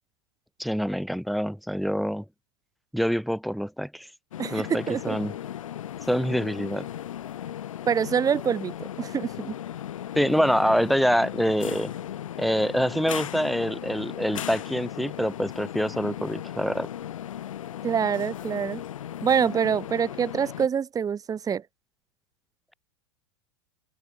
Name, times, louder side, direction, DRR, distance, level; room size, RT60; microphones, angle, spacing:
voice 1, 0.6-2.2 2.9-4.1 4.5-5.3 6.1-6.9 10.2-11.9 12.4-16.9, equal, ahead, 0.6 m, -25 dB
sound 1, 4.3-20.7, left 11 dB, 80° left, 1.5 m, -37 dB
voice 2, 4.4-5.2 7.8-9.5 17.8-18.8 19.2-21.6, right 7 dB, 20° right, 1.3 m, -26 dB
hypercardioid pair, 105°, 17 cm